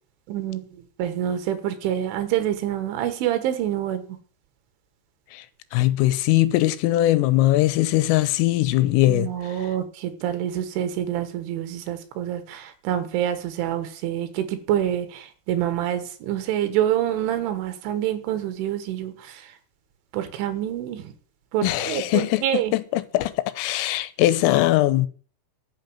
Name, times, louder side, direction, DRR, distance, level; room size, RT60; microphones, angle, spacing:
voice 1, 0.3-0.6 1.0-4.0 9.1-19.4 20.1-21.1 21.5-22.7, right 11 dB, 75° right, 3.8 m, -26 dB
voice 2, 5.7-9.7 21.6-25.1, left 16 dB, 90° left, 3.5 m, -21 dB
12.0 x 6.1 x 9.1 m
omnidirectional pair, 5.8 m